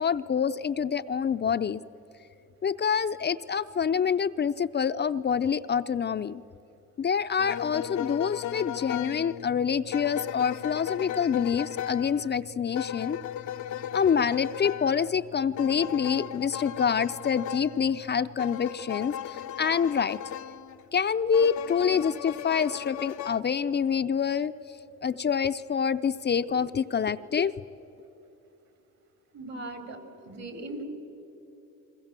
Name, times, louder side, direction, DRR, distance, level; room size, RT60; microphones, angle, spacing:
voice 1, 0.0-1.8 2.6-6.4 7.0-13.2 13.9-20.2 20.9-24.5 25.0-27.5, left 7 dB, 35° left, 10 dB, 0.5 m, -26 dB
sound 1, 7.4-20.8 21.3-23.4, left 10 dB, 75° left, 0.7 m, -37 dB
voice 2, 29.3-30.8, right 2 dB, 60° right, 7 dB, 3.8 m, -39 dB
29.5 x 22.0 x 7.5 m, 2.9 s
cardioid pair, 90°, 30 cm